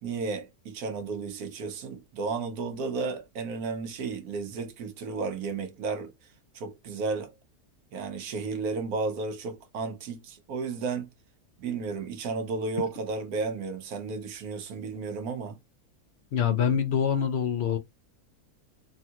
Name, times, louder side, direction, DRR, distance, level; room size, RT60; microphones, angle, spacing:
voice 1, 0.0-6.1 6.5-7.3 7.9-11.1 11.6-15.6, right 4 dB, 85° right, 1.2 m, -33 dB
voice 2, 16.3-17.8, left 8 dB, 60° left, 0.8 m, -25 dB
3.5 x 2.8 x 2.3 m
omnidirectional pair, 1.5 m